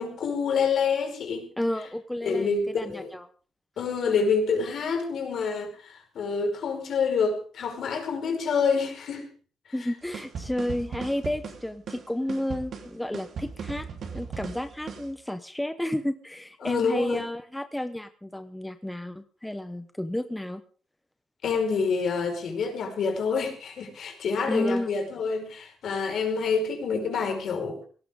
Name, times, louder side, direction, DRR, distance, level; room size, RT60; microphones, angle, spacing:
voice 1, 0.0-1.4 2.2-3.1 3.8-9.3 16.6-17.2 21.4-27.8, left 5 dB, 60° left, 4 dB, 4.9 m, -27 dB
voice 2, 1.6-3.3 9.7-13.9 14.1-20.6 24.5-24.9, left 1 dB, 5° left, 9 dB, 0.8 m, -31 dB
sound 1, 10.1-15.1, right 6 dB, 55° right, 3.5 m, -38 dB
18.0 x 17.5 x 3.7 m, 0.40 s
cardioid pair, 145°, 0 cm